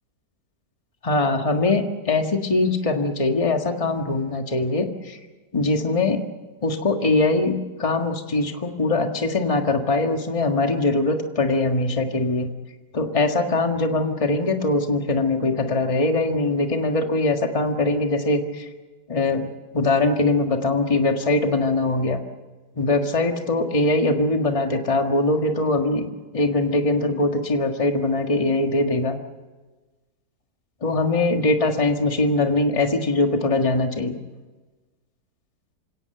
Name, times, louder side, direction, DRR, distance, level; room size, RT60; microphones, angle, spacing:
voice 1, 1.0-5.2 5.5-6.2 6.6-12.5 12.9-18.7 19.1-22.2 22.8-26.1 26.3-29.2 30.8-34.2, left 2 dB, 20° left, 4 dB, 1.6 m, -22 dB
28.0 x 17.0 x 7.9 m, 1.3 s
omnidirectional pair, 1.8 m